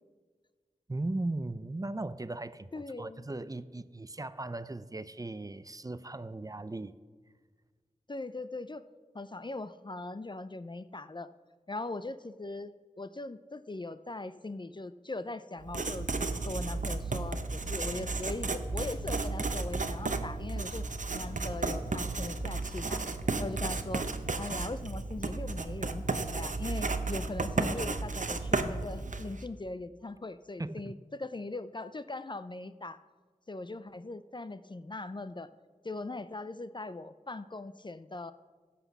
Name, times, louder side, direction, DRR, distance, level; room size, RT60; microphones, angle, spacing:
voice 1, 0.9-7.0 30.6-30.9, right 2 dB, 25° right, 15 dB, 0.5 m, -37 dB
voice 2, 2.7-3.2 8.1-8.8 9.1-11.3 11.7-16.1 16.4-20.9 21.1-23.0 23.4-24.1 24.4-33.0 33.5-35.5 35.8-38.3, left 2 dB, 35° left, 13 dB, 0.4 m, -40 dB
Writing, 15.6-29.4, right 3 dB, 65° right, 0.8 m, -33 dB
15.5 x 6.0 x 6.0 m, 1.5 s
wide cardioid pair, 50°, 14 cm